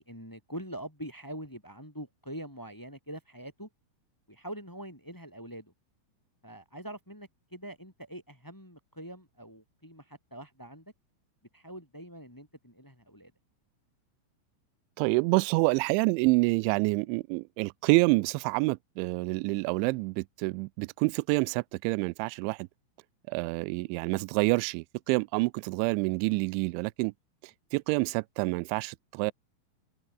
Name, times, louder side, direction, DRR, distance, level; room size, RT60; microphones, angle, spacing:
voice 1, 0.0-3.7 4.3-5.7 6.4-10.9 11.5-13.3, right 1 dB, 10° left, 1.4 m, -44 dB
voice 2, 15.0-22.7 23.3-27.1 27.7-29.3, right 26 dB, 85° right, 2.7 m, -27 dB
omnidirectional pair, 5.8 m